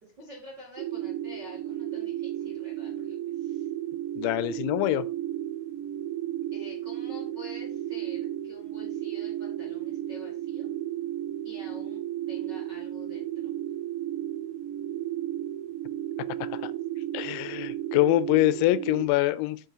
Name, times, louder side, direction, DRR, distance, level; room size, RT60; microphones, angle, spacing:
voice 1, 0.0-3.7 6.5-10.7 11.4-13.5, equal, 65° right, 1.0 m, -48 dB
sound 1, 0.8-19.1, right 12 dB, 90° right, 2.6 m, -34 dB
voice 2, 4.2-5.0 16.6-16.7 17.1-19.6, left 17 dB, 90° left, 3.3 m, -24 dB
9.0 x 7.8 x 2.9 m
omnidirectional pair, 6.0 m